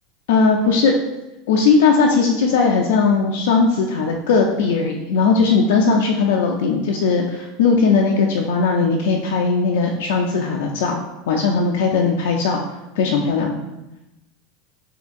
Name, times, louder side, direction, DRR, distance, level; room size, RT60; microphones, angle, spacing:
voice 1, 0.3-0.9 1.5-11.0 11.3-12.6 13.0-13.6, left 4 dB, 75° left, 1 dB, 0.3 m, -18 dB
3.7 x 2.9 x 2.5 m, 0.95 s
hypercardioid pair, 85°, 0 cm